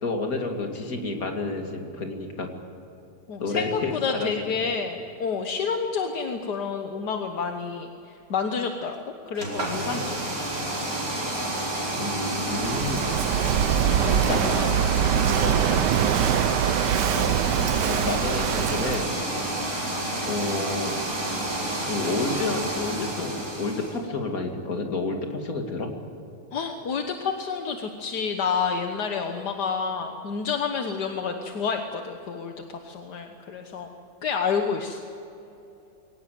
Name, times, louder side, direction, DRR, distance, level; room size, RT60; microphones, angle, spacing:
voice 1, 0.0-2.5 3.4-4.3 12.0-13.1 14.3-14.8 15.4-15.6 17.1-17.5 17.8-19.1 20.3-21.0 21.8-25.9, left 3 dB, 60° left, 3 dB, 2.9 m, -30 dB
voice 2, 3.3-10.6 13.9-14.7 15.3-15.8 16.2-16.6 26.5-33.9 34.2-35.0, left 5 dB, 75° left, 4 dB, 1.8 m, -29 dB
sound 1, 9.3-24.0, right 1 dB, 55° right, 5.2 m, -30 dB
Walk footsteps / Wind / Waves surf, 12.5-19.1, right 10 dB, 90° right, 1.4 m, -24 dB
23.0 x 18.0 x 9.2 m, 2.9 s
omnidirectional pair, 1.8 m